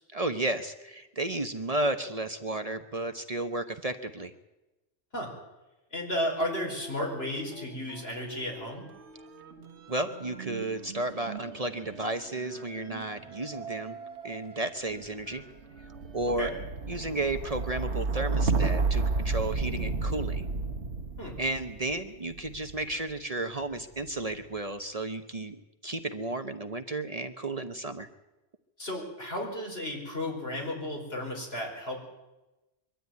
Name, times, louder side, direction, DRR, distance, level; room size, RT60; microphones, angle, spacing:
voice 1, 0.1-4.3 9.9-14.0 14.2-15.4 16.1-16.5 16.9-20.5 21.4-25.6 25.8-28.1, right 2 dB, 35° right, 7 dB, 1.0 m, -33 dB
voice 2, 5.9-8.9 16.3-16.5 21.2-21.4 28.8-32.0, left 1 dB, 65° left, 0 dB, 5.4 m, -33 dB
sound 1, 6.4-7.7 8.0-23.0 23.8-24.4, right 4 dB, 85° right, 1.5 m, -33 dB
23.5 x 13.0 x 9.5 m, 1.0 s
omnidirectional pair, 1.1 m